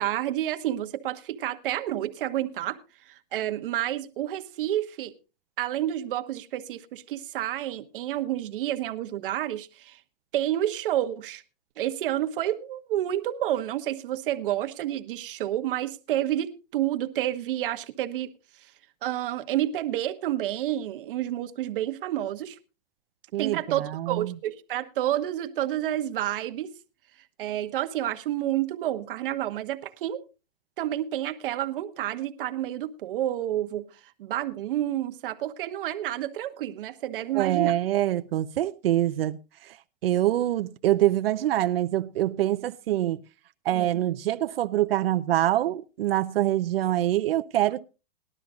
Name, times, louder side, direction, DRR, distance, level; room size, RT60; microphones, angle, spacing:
voice 1, 0.0-2.8 3.1-5.1 5.6-10.0 10.3-11.4 11.8-18.3 19.0-22.6 23.4-26.7 27.4-30.2 30.8-33.9 34.2-37.7 43.7-44.0, right 13 dB, 65° right, 1.2 m, -29 dB
voice 2, 23.3-24.3 37.3-39.8 40.0-43.2 43.6-47.9, right 13 dB, 85° right, 0.7 m, -25 dB
19.5 x 12.0 x 2.4 m
supercardioid pair, 145°, 29 cm